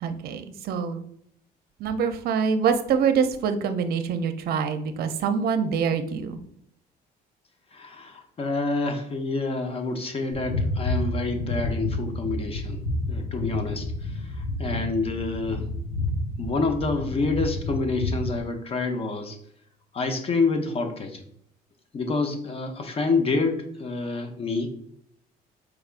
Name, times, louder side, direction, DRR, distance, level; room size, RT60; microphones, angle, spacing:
voice 1, 0.0-1.1 1.8-6.4, right 6 dB, 65° right, 9 dB, 0.5 m, -25 dB
voice 2, 7.7-12.8 13.1-15.7 16.4-19.4 19.9-21.2 21.9-24.7, left 3 dB, 35° left, 5 dB, 0.7 m, -28 dB
sound 1, 10.3-18.4, left 2 dB, 80° left, 1.1 m, -30 dB
4.8 x 3.4 x 2.5 m, 0.69 s
cardioid pair, 110°, 17 cm